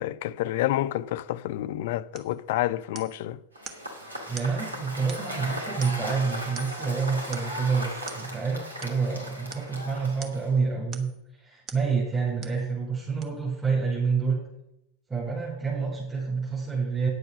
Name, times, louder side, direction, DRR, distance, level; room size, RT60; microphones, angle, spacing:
voice 1, 0.0-3.4, left 14 dB, 60° left, 0.4 m, -29 dB
sound 1, 2.1-2.4 3.0-3.2 3.7-3.9 4.4-4.6 5.1-5.4 5.8-6.2 6.6-6.9 7.3-7.6 8.1-8.3 8.8-9.0 9.5-9.7 10.2-10.5 10.9-11.2 11.7-11.9 12.4-12.6 13.2-13.3, right 5 dB, 35° right, 1.2 m, -44 dB
Cheering / Applause / Crowd, 3.6-10.6, equal, 90° right, 2.0 m, -37 dB
voice 2, 4.3-14.4 15.1-17.1, right 5 dB, 20° right, 4.6 m, -28 dB
9.6 x 8.0 x 5.1 m
figure-of-eight pair, 85°, 0 cm